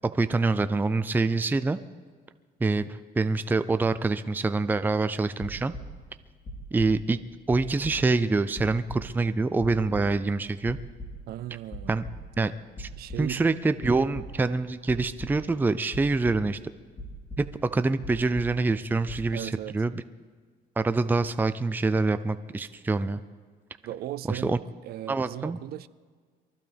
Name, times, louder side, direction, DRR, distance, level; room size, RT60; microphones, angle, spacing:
voice 1, 0.0-1.8 2.6-5.7 6.7-7.2 7.5-10.8 11.9-12.0 12.4-12.9 13.2-16.6 17.4-20.0 20.8-23.2 24.3-24.6 25.1-25.6, right 3 dB, 10° right, 0.5 m, -26 dB
sound 1, 5.4-6.1 6.4-7.2 7.5-9.2 9.6-10.4 10.7-11.4 11.7-12.4 12.7-13.4 13.8-14.6 14.8-15.5 15.9-16.7 17.0-17.7 18.0-18.8 19.0-19.3, left 1 dB, 40° left, 3.8 m, -41 dB
voice 2, 11.3-12.0 13.0-13.4 19.3-19.7 23.8-24.6 24.8-25.9, right 13 dB, 65° right, 0.5 m, -37 dB
23.5 x 14.5 x 3.5 m
cardioid pair, 110°, 17 cm